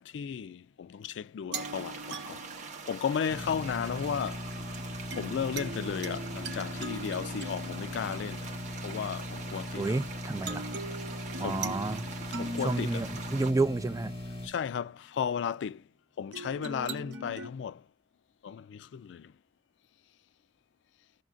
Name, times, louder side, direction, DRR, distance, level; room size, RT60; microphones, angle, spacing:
voice 1, 0.0-2.4 2.9-4.5 5.2-8.5 8.8-10.0 11.4-11.8 12.4-13.0 14.4-15.8 16.2-17.8 18.4-19.3, left 7 dB, 90° left, 0.3 m, -34 dB
sound 1, 1.5-13.5, right 5 dB, 45° right, 1.2 m, -44 dB
sound 2, 1.5-3.8 5.1-9.9 10.4-14.6 16.3-17.5, right 2 dB, 70° right, 0.9 m, -42 dB
sound 3, 3.3-14.5, left 1 dB, 35° left, 2.2 m, -39 dB
voice 2, 9.8-10.7 11.4-12.1 12.6-14.1, right 3 dB, 20° right, 0.4 m, -30 dB
16.0 x 6.3 x 2.5 m
head